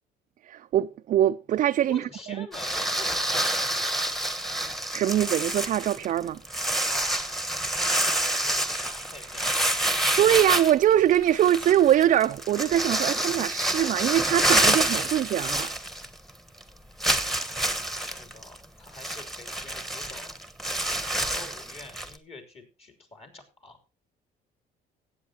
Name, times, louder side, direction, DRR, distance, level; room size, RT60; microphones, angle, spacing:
voice 1, 0.5-2.0 2.3-2.5 4.9-6.4 10.2-15.7, right 11 dB, 50° right, 0.4 m, -23 dB
voice 2, 1.8-4.0 6.8-7.3 7.7-9.8 17.2-20.3 21.2-23.8, left 2 dB, 35° left, 3.2 m, -47 dB
sound 1, 2.5-16.3 16.6-16.7 17.0-22.2, right 1 dB, ahead, 1.1 m, -27 dB
17.5 x 8.2 x 2.8 m
cardioid pair, 110°, 17 cm